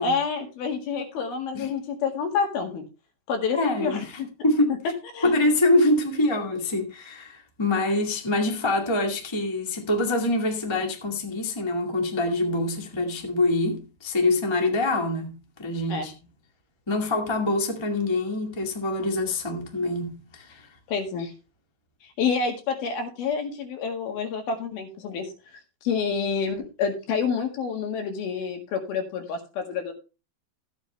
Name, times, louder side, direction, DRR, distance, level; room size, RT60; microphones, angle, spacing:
voice 1, 0.0-2.8 3.3-4.3 5.1-5.3 15.9-16.1 20.9-21.3 22.0-25.3 25.8-29.9, left 5 dB, 70° left, 3.6 m, -28 dB
voice 2, 3.5-4.1 4.4-4.8 5.2-15.3 15.6-16.1 16.9-20.5, left 2 dB, 20° left, 0.7 m, -25 dB
14.0 x 9.2 x 3.3 m
omnidirectional pair, 4.6 m